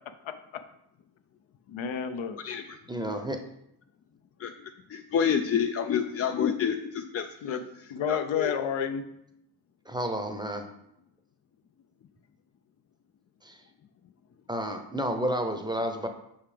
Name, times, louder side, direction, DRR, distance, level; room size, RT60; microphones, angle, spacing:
voice 1, 1.7-2.4 7.4-7.6 7.9-9.1, left 7 dB, 70° left, 8 dB, 0.8 m, -30 dB
voice 2, 2.4-2.8 4.4-8.5, left 7 dB, 35° left, 6 dB, 0.4 m, -29 dB
voice 3, 2.9-3.4 9.8-10.7 13.4-13.6 14.5-16.1, equal, 10° right, 5 dB, 0.7 m, -31 dB
5.8 x 5.6 x 3.4 m, 0.80 s
cardioid pair, 80°, 49 cm